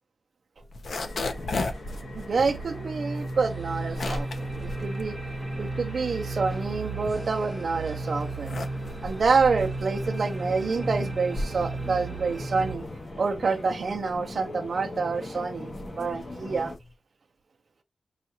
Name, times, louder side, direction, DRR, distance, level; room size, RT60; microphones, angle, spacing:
sound 1, 0.6-5.9 6.3-7.7 8.2-16.9, left 2 dB, 75° left, 0.7 m, -37 dB
sound 2, 1.0-16.8, left 2 dB, 40° left, 1.2 m, -42 dB
sound 3, 1.7-12.8, right 3 dB, 20° right, 0.8 m, -35 dB
voice 1, 2.1-5.2 5.6-8.6 9.0-12.8 13.2-16.7, right 4 dB, 65° right, 0.6 m, -27 dB
5.6 x 2.4 x 2.8 m
wide cardioid pair, 105°, 0 cm